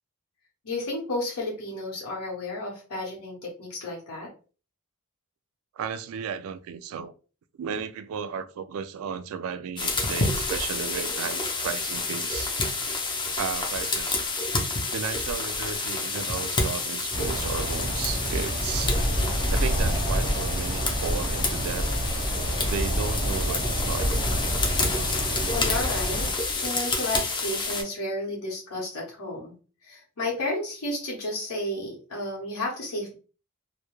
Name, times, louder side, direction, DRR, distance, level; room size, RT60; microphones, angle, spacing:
voice 1, 0.6-4.3 25.1-25.2 25.5-29.5 29.8-33.1, left 1 dB, 80° left, 0.9 m, -32 dB
voice 2, 5.8-7.1 7.6-12.5 13.3-14.2 14.9-19.0 19.5-21.9 22.7-24.1, right 7 dB, 65° right, 0.3 m, -34 dB
sound 1, 9.8-27.8, left 3 dB, 20° left, 0.5 m, -29 dB
sound 2, 17.1-26.3, equal, 25° right, 0.6 m, -28 dB
2.3 x 2.0 x 2.9 m
head